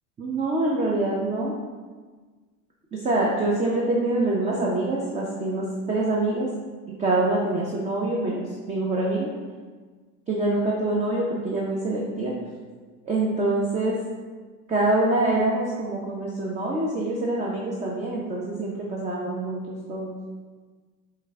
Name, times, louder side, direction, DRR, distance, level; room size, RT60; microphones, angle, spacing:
voice 1, 0.2-1.5 2.9-6.5 7.0-9.3 10.3-12.3 13.1-14.0 14.7-20.2, right 2 dB, 15° right, -3 dB, 0.5 m, -25 dB
4.6 x 2.2 x 3.4 m, 1.4 s
hypercardioid pair, 85°, 44 cm